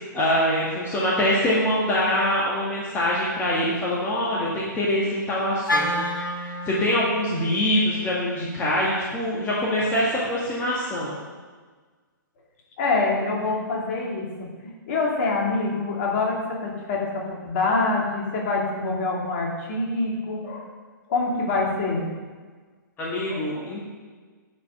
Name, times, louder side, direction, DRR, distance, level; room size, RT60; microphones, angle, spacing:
voice 1, 0.1-6.1 6.4-11.2 23.0-23.9, left 1 dB, 15° left, -6 dB, 1.8 m, -24 dB
Wind instrument woodwind instrument, 5.7-9.9, left 1 dB, 75° left, 1.6 m, -31 dB
voice 2, 12.8-14.3 14.6-20.7 21.1-22.1 23.3-23.7, left 3 dB, 40° left, -2 dB, 2.6 m, -25 dB
10.5 x 5.6 x 6.8 m, 1.5 s
figure-of-eight pair, 120°, 11 cm